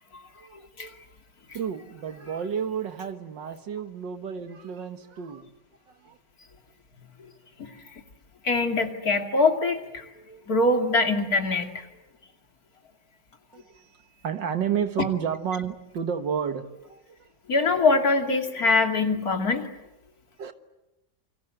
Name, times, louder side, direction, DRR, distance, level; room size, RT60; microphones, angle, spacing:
voice 1, 1.5-5.5 5.9-6.2 13.5-17.3 20.4-20.5, right 7 dB, 85° right, 9 dB, 2.1 m, -31 dB
voice 2, 8.4-11.9 17.5-19.7, left 3 dB, 55° left, 4 dB, 2.9 m, -23 dB
28.5 x 25.0 x 7.8 m, 0.95 s
omnidirectional pair, 1.9 m